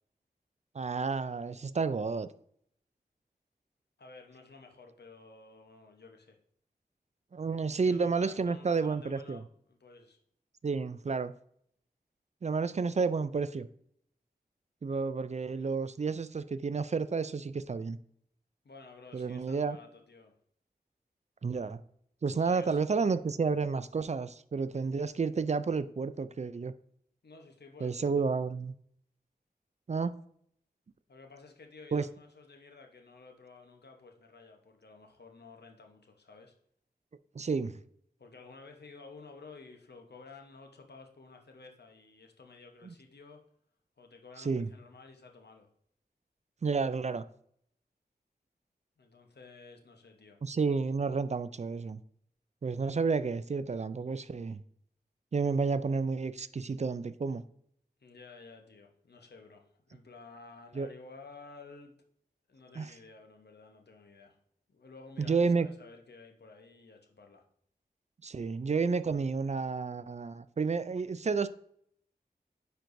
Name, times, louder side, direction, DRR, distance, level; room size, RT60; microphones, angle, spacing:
voice 1, 0.7-2.3 7.3-9.4 10.6-11.3 12.4-13.7 14.8-18.0 19.1-19.8 21.4-21.8 22.2-26.7 27.8-28.7 29.9-30.1 31.9-32.1 37.4-37.7 42.8-42.9 44.4-44.7 46.6-47.2 50.4-52.0 52.6-54.6 55.3-57.4 60.8-60.9 62.8-62.9 65.2-65.7 68.2-71.5, right 4 dB, 45° right, 0.4 m, -31 dB
voice 2, 4.0-6.4 7.6-10.2 18.6-20.3 22.4-22.8 27.2-28.3 31.1-36.5 38.2-43.4 44.0-45.7 49.0-50.4 58.0-61.9 62.5-64.4 64.7-67.4, left 4 dB, 90° left, 0.9 m, -53 dB
9.5 x 4.5 x 2.6 m
wide cardioid pair, 70°, 17 cm